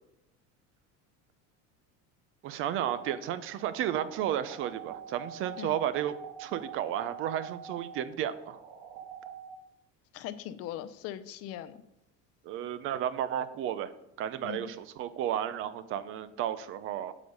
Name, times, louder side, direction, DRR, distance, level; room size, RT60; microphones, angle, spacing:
voice 1, 2.4-6.1 6.4-8.6 12.4-13.9 14.2-17.1, right 10 dB, 45° right, 14 dB, 0.5 m, -33 dB
sound 1, 2.8-9.5, right 8 dB, 75° right, 1.9 m, -45 dB
voice 2, 10.1-11.8 14.4-14.7, left 12 dB, 50° left, 13 dB, 0.6 m, -40 dB
8.3 x 7.0 x 5.4 m, 0.83 s
cardioid pair, 165°, 30 cm